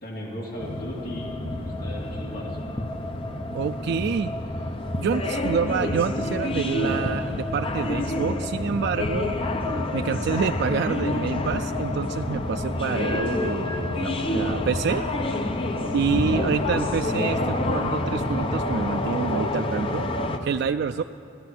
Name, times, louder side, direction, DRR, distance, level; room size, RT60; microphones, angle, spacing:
voice 1, 0.0-2.7, equal, 50° left, -3 dB, 2.9 m, -36 dB
sound 1, 0.6-20.4, left 2 dB, 30° left, 0.7 m, -28 dB
voice 2, 3.5-4.3 5.0-9.3 9.9-15.1 15.9-20.1 20.4-21.0, right 6 dB, 60° right, 9 dB, 0.3 m, -27 dB
15.5 x 11.5 x 7.8 m, 2.5 s
head